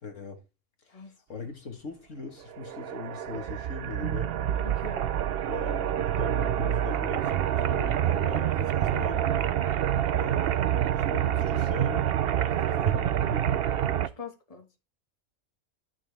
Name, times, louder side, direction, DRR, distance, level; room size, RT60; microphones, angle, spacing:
voice 1, 0.0-0.4 0.8-4.3 5.5-9.3 10.1-10.6 10.9-12.1 12.5-13.6, left 5 dB, 60° left, 1.9 m, -41 dB
sound 1, 2.5-14.1, right 10 dB, 60° right, 0.7 m, -27 dB
voice 2, 4.6-5.1 12.6-13.1 14.2-14.7, left 4 dB, 25° left, 1.7 m, -43 dB
13.0 x 6.4 x 3.4 m
omnidirectional pair, 1.5 m